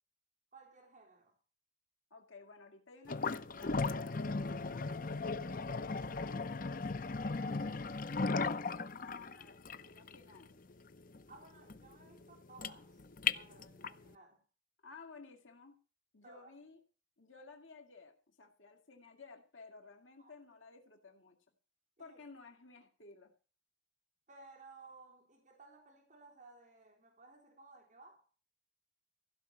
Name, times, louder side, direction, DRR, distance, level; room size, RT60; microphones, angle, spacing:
voice 1, 0.5-1.4 8.6-9.0 11.3-13.1 13.3-14.4 16.2-16.6 20.2-20.3 22.0-22.2 24.3-28.3, right 3 dB, 40° right, 3.6 m, -58 dB
voice 2, 2.1-4.9 5.2-7.9 8.5-10.5 14.8-15.7 16.1-16.8 17.2-21.4 22.0-23.3, left 4 dB, 75° left, 2.4 m, -56 dB
sound 1, 3.1-14.1, left 4 dB, 45° left, 0.7 m, -37 dB
16.0 x 6.0 x 8.8 m
head